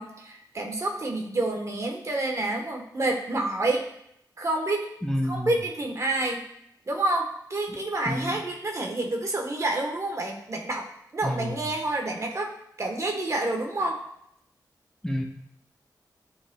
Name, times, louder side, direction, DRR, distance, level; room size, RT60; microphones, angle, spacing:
voice 1, 0.0-3.9 4.4-4.9 5.2-6.4 6.9-10.8 11.1-12.5 12.8-14.0, right 2 dB, 45° right, 2 dB, 1.1 m, -28 dB
voice 2, 5.0-5.6 7.7-7.8 8.1-8.4 11.2-11.7 15.0-15.2, equal, 5° left, 1 dB, 0.9 m, -29 dB
10.5 x 4.9 x 2.2 m, 0.73 s
wide cardioid pair, 75°, 7 cm